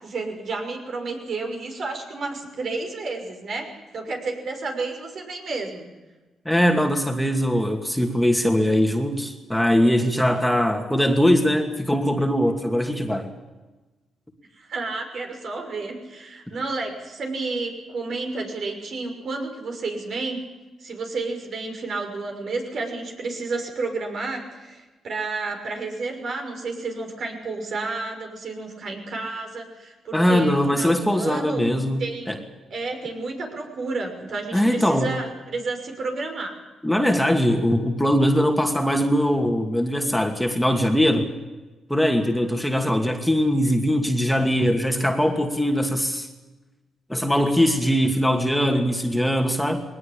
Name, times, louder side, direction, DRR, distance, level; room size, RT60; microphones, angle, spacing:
voice 1, 0.0-3.7 3.9-5.8 14.5-20.4 20.8-31.6 32.0-36.5, right 3 dB, 60° right, 3 dB, 6.0 m, -31 dB
voice 2, 6.4-13.3 30.1-32.0 32.3-32.4 34.5-35.1 36.8-41.3 41.9-46.3 47.1-49.8, equal, 5° left, 3 dB, 2.5 m, -21 dB
21.0 x 19.0 x 8.8 m, 1.2 s
cardioid pair, 90°, 0 cm